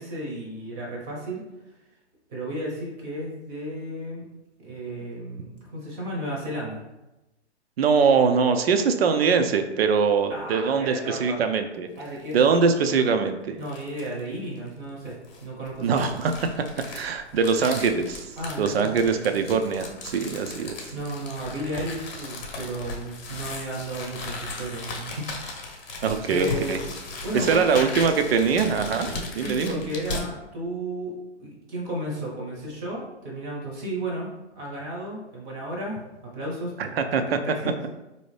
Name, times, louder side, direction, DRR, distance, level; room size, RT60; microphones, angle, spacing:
voice 1, 0.0-1.4 2.3-4.3 4.6-6.8 10.3-11.4 12.0-12.4 13.6-16.0 18.4-19.3 20.9-25.9 26.2-26.9 27.2-27.9 29.3-34.3 34.6-37.9, right 1 dB, 20° right, -3 dB, 0.7 m, -34 dB
voice 2, 7.8-11.9 12.3-13.6 15.8-16.5 16.9-18.3 18.6-20.9 26.0-26.8 27.3-29.1 29.3-29.8 37.0-37.2, right 5 dB, 60° right, 7 dB, 0.5 m, -22 dB
sound 1, 12.0-12.5 12.9-13.0 13.6-14.2 15.0-30.3, left 3 dB, 40° left, 0.8 m, -37 dB
4.1 x 2.7 x 3.2 m, 1.0 s
hypercardioid pair, 145°, 35 cm